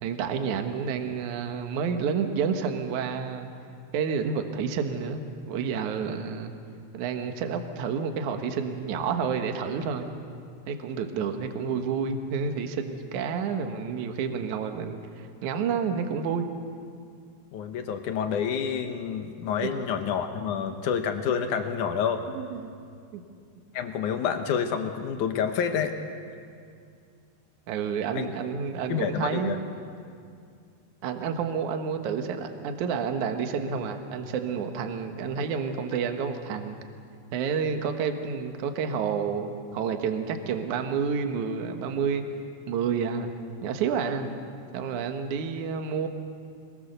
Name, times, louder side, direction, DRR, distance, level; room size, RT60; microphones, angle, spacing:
voice 1, 0.0-3.5 3.9-6.5 6.9-10.1 10.7-16.5 19.6-19.7 22.3-22.7 23.1-23.2 27.7-29.6 31.0-36.8 37.3-42.2 42.7-43.3 43.6-44.3 44.7-46.1, right 6 dB, 60° right, 6 dB, 2.2 m, -29 dB
voice 2, 17.5-22.2 23.7-25.9 28.1-28.3 28.9-29.6, left 7 dB, 75° left, 6 dB, 1.8 m, -28 dB
26.0 x 21.5 x 6.8 m, 2.3 s
omnidirectional pair, 4.9 m